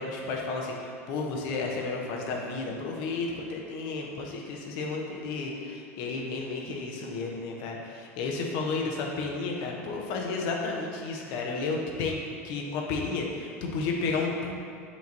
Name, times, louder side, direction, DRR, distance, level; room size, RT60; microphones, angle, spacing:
voice 1, 0.0-12.2 12.4-14.5, left 3 dB, 60° left, 0 dB, 0.7 m, -32 dB
5.8 x 3.0 x 2.7 m, 2.2 s
hypercardioid pair, 85°, 8 cm